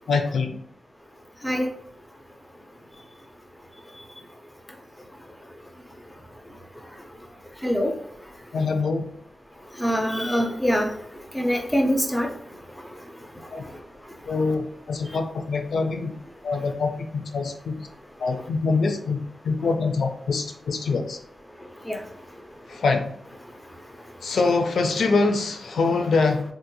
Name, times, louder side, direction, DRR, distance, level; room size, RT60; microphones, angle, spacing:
voice 1, 0.1-0.6 8.5-9.1 13.5-13.6 14.3-16.1 16.4-17.9 18.2-21.2 22.7-23.1 24.2-26.4, left 4 dB, 80° left, 5 dB, 0.4 m, -24 dB
voice 2, 9.8-10.9 11.3-12.3 21.9-22.0, equal, 5° left, 3 dB, 0.4 m, -23 dB
3.6 x 2.8 x 2.2 m, 0.65 s
wide cardioid pair, 155°, 0 cm